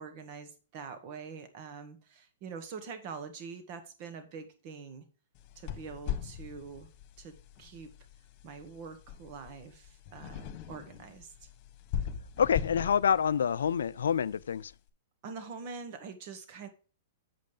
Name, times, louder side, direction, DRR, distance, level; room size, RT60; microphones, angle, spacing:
voice 1, 0.0-5.1 5.6-6.9 7.2-7.9 8.4-11.3 15.2-16.7, right 5 dB, 45° right, 1.8 m, -44 dB
sound 1, 5.4-14.7, left 9 dB, 45° left, 1.4 m, -41 dB
voice 2, 12.4-14.7, left 7 dB, 80° left, 0.4 m, -27 dB
7.8 x 5.3 x 4.9 m
hypercardioid pair, 125°, 0 cm